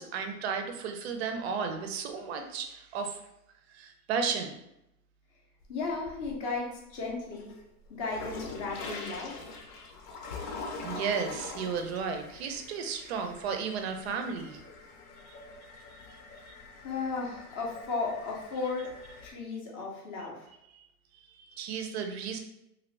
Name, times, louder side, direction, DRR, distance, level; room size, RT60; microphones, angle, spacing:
voice 1, 0.0-3.2 3.7-4.6 10.4-14.6 15.3-15.4 16.5-16.6 21.5-22.4, right 6 dB, 45° right, 6 dB, 0.5 m, -34 dB
sound 1, 5.6-6.6 7.0-19.3, left 3 dB, 70° left, 0.8 m, -44 dB
voice 2, 5.7-7.5 7.9-9.3 16.8-18.9 19.2-20.5, left 4 dB, 20° left, -2 dB, 0.5 m, -35 dB
2.8 x 2.6 x 3.1 m, 0.84 s
hypercardioid pair, 140°, 47 cm